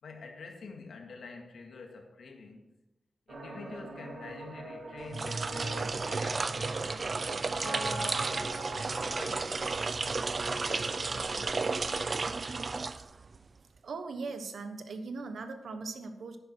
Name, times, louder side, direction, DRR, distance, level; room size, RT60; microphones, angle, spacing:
voice 1, 0.0-2.7 3.3-8.4 9.0-12.3, left 4 dB, 70° left, 1.9 m, -48 dB
sound 1, 3.3-9.2, right 2 dB, 60° right, 2.4 m, -41 dB
sound 2, 5.0-13.4, right 4 dB, 35° right, 0.4 m, -33 dB
voice 2, 13.8-16.4, right 4 dB, 75° right, 1.1 m, -39 dB
10.5 x 10.5 x 4.5 m
wide cardioid pair, 170°, 0 cm